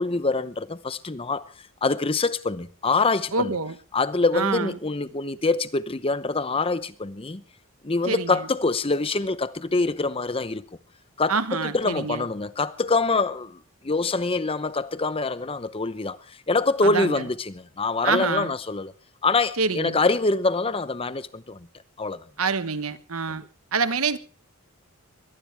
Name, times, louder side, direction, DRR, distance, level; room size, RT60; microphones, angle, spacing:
voice 1, 0.0-1.4 1.8-3.6 3.9-7.4 7.8-10.6 11.2-18.9 19.2-21.7 22.0-22.2 23.3-23.4, left 3 dB, 25° left, 0.8 m, -25 dB
voice 2, 3.3-3.7 4.3-4.7 8.1-8.4 11.3-12.2 16.8-17.2 18.0-18.5 19.6-20.0 22.4-23.4 23.7-24.2, right 4 dB, 80° right, 1.3 m, -26 dB
22.5 x 18.0 x 3.4 m
head